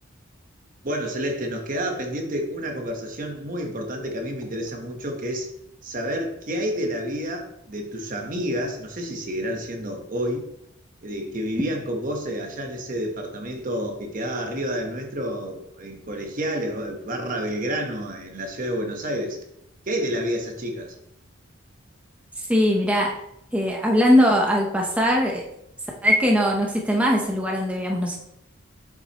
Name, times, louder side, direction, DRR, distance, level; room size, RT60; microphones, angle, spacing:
voice 1, 0.8-5.5 5.8-10.5 11.0-19.4 19.9-21.0, equal, 40° right, 3 dB, 1.1 m, -29 dB
voice 2, 22.4-23.2 23.5-25.4 26.0-28.2, equal, 5° right, -1 dB, 0.7 m, -20 dB
7.8 x 7.2 x 2.9 m, 0.79 s
head